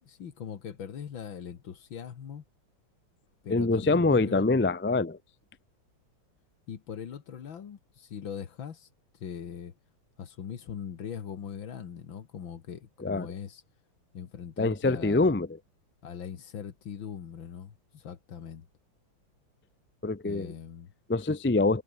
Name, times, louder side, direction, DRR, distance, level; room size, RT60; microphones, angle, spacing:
voice 1, 0.0-2.4 3.4-4.5 6.7-8.9 9.2-9.7 10.2-13.6 14.1-15.3 16.0-18.7 20.2-20.9, left 8 dB, 75° left, 2.4 m, -41 dB
voice 2, 3.5-5.2 13.0-13.3 14.6-15.6 20.0-20.5 21.1-21.8, left 3 dB, 15° left, 0.5 m, -25 dB
omnidirectional pair, 2.1 m